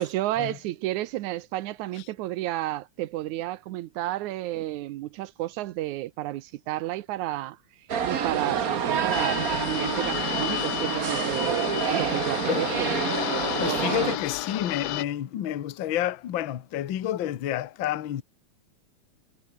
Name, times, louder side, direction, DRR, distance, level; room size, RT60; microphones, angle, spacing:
voice 1, 0.0-7.6 8.1-12.9 13.6-14.2, right 15 dB, 85° right, 2.2 m, -31 dB
sound 1, 7.9-14.2, right 7 dB, 50° right, 1.1 m, -28 dB
sound 2, 9.1-15.0, left 14 dB, 70° left, 1.8 m, -32 dB
voice 2, 13.6-18.2, left 12 dB, 55° left, 1.5 m, -29 dB
omnidirectional pair, 3.4 m